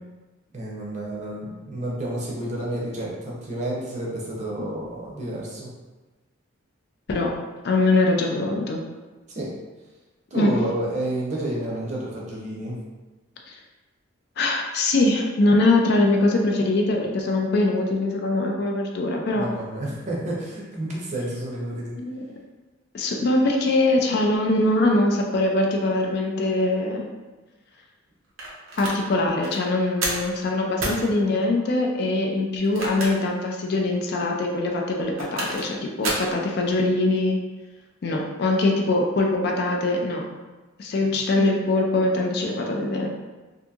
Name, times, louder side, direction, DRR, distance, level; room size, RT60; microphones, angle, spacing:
voice 1, 0.5-5.7 9.3-9.5 10.3-12.8 18.6-18.7 19.3-22.0 41.0-41.1, right 1 dB, 35° right, -4 dB, 0.6 m, -30 dB
voice 2, 7.6-8.8 10.3-10.5 13.5-13.6 14.4-19.5 22.0-22.2 22.9-27.1 28.8-37.4 38.0-40.3 40.8-43.1, left 2 dB, 50° left, 1 dB, 0.3 m, -22 dB
sound 1, 28.4-29.0 29.4-29.6 30.0-30.3 30.8-31.0 32.5-33.3 33.7-33.8 34.9-35.7 36.0-36.3, right 2 dB, 80° right, 0.6 m, -29 dB
2.7 x 2.6 x 2.3 m, 1.2 s
head